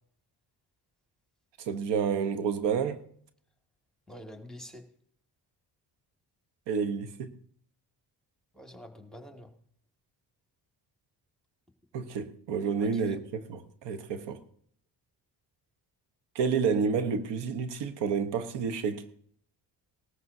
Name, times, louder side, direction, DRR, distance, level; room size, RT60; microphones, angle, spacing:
voice 1, 1.6-3.0 6.7-7.3 11.9-14.4 16.3-19.1, right 6 dB, 85° right, 1.1 m, -29 dB
voice 2, 4.1-4.8 8.5-9.5 12.8-13.2, equal, ahead, 1.9 m, -47 dB
18.5 x 14.0 x 2.7 m
cardioid pair, 85°, 41 cm